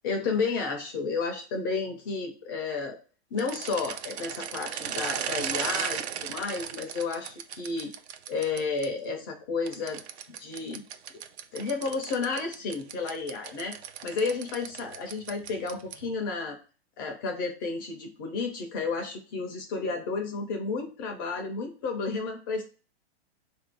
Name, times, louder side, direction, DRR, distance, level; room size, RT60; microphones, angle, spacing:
voice 1, 0.0-3.0 3.3-7.9 8.3-10.0 10.4-10.8 11.5-13.8 14.0-16.6 17.0-22.6, left 4 dB, 20° left, 2 dB, 0.4 m, -32 dB
sound 1, 3.4-8.9 9.7-16.1, right 9 dB, 75° right, 0.5 m, -37 dB
3.8 x 2.5 x 4.5 m, 0.37 s
hypercardioid pair, 150°, 33 cm